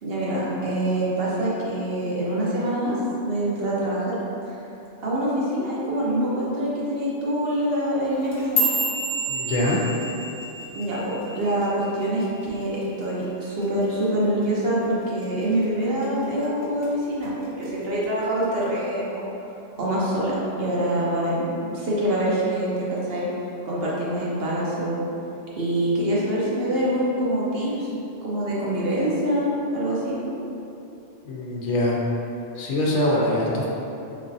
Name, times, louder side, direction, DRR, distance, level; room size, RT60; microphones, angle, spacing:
voice 1, 0.0-4.1 4.5-4.6 5.0-8.6 10.7-19.2 19.8-23.3 23.6-25.0 25.6-27.9 28.2-30.2, right 1 dB, 60° right, -7 dB, 0.9 m, -25 dB
sound 1, 8.1-12.5 12.8-13.2 13.6-14.0 14.4-14.6 15.2-15.6 16.0-16.8 17.2-17.6 18.4-18.5, right 1 dB, 30° left, 0.7 m, -29 dB
voice 2, 9.3-9.9 31.2-32.0 32.5-33.7, left 1 dB, 75° left, -4 dB, 0.9 m, -23 dB
3.6 x 3.1 x 2.6 m, 2.9 s
omnidirectional pair, 1.2 m